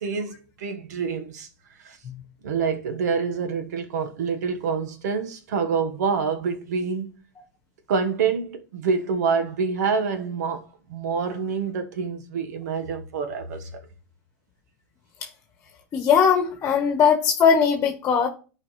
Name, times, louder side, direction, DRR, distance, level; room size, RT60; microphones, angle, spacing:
voice 1, 0.0-1.5 1.8-2.0 2.4-7.1 7.9-10.6 10.9-13.7, right 5 dB, 80° right, 1.3 m, -26 dB
voice 2, 15.9-18.3, left 6 dB, 30° left, 1.3 m, -19 dB
11.5 x 4.9 x 3.1 m
supercardioid pair, 125°, 9 cm